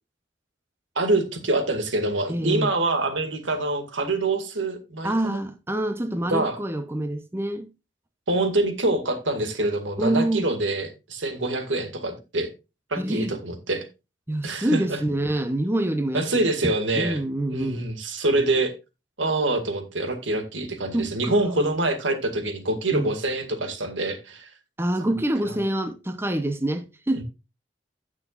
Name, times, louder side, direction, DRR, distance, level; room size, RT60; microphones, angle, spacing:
voice 1, 1.0-5.4 6.3-6.6 8.3-12.5 12.9-13.9 14.4-15.0 15.3-15.4 16.1-17.2 17.5-18.8 19.2-24.5 25.0-25.1 27.2-27.3, right 2 dB, 90° right, 2.1 m, -25 dB
voice 2, 2.3-2.7 5.0-7.7 10.0-10.5 13.0-13.3 14.3-16.5 16.9-17.8 20.9-21.7 22.9-23.1 24.8-27.2, right 1 dB, 15° right, 0.7 m, -26 dB
16.5 x 6.2 x 2.4 m
head